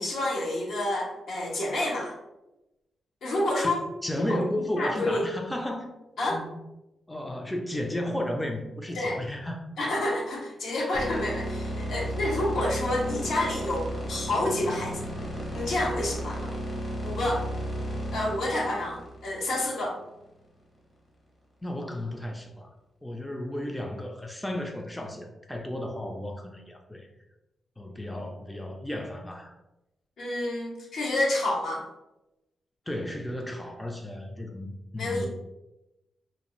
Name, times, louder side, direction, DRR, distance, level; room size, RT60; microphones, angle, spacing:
voice 1, 0.0-2.1 3.2-3.8 4.1-4.5 4.8-5.2 6.2-6.4 8.9-9.2 9.8-15.0 15.5-16.5 17.0-17.4 18.1-20.0 30.2-31.9 35.0-35.3, left 1 dB, 75° left, -2 dB, 0.8 m, -29 dB
voice 2, 4.0-5.9 6.3-6.6 7.1-9.6 21.6-22.7 23.0-27.1 27.8-29.5 32.9-35.3, left 1 dB, 10° left, 2 dB, 0.3 m, -33 dB
sound 1, 10.9-20.1, equal, 40° left, 0.8 m, -34 dB
2.5 x 2.3 x 3.0 m, 0.96 s
cardioid pair, 110°, 0 cm